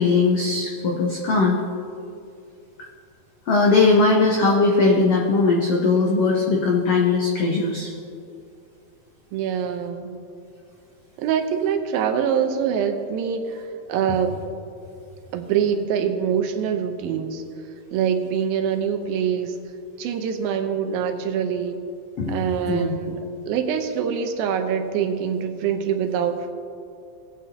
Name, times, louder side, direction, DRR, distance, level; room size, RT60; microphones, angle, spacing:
voice 1, 0.0-1.6 3.5-7.9 22.2-22.4 22.7-22.9, left 3 dB, 85° left, -1 dB, 1.4 m, -19 dB
voice 2, 9.3-10.2 11.2-13.6 13.9-14.4 15.3-17.4 17.9-19.6 20.0-21.8 22.3-23.2 23.5-26.5, right 7 dB, 90° right, 6 dB, 2.6 m, -24 dB
19.0 x 8.6 x 2.8 m, 2.6 s
omnidirectional pair, 4.2 m